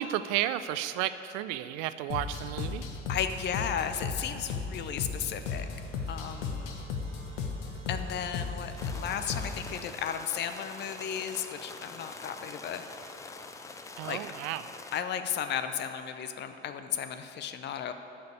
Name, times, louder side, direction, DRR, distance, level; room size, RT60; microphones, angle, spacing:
voice 1, 0.0-2.9 14.0-14.6, right 12 dB, 45° right, 12 dB, 0.5 m, -32 dB
sound 1, 2.1-9.8, left 5 dB, 50° left, 1.3 m, -36 dB
voice 2, 3.1-5.7 6.1-6.8 7.9-12.9 14.1-14.2 14.9-17.9, left 8 dB, 30° left, 9 dB, 0.7 m, -34 dB
sound 2, 4.8-16.0, right 2 dB, 80° right, 1.6 m, -55 dB
sound 3, 8.8-15.0, left 4 dB, 10° left, 0.3 m, -45 dB
12.0 x 6.7 x 8.4 m, 2.8 s
figure-of-eight pair, 65°, 36 cm